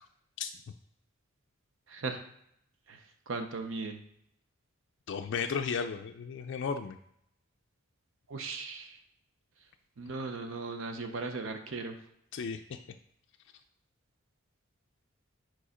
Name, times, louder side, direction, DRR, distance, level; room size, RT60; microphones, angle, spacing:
voice 1, 1.9-2.2 2.9-3.0 3.3-4.0 8.3-9.0 10.0-11.9, right 3 dB, 65° right, 6 dB, 0.7 m, -37 dB
voice 2, 5.1-7.0 12.3-12.8, left 6 dB, 60° left, 6 dB, 0.4 m, -34 dB
4.8 x 4.5 x 5.0 m, 0.72 s
head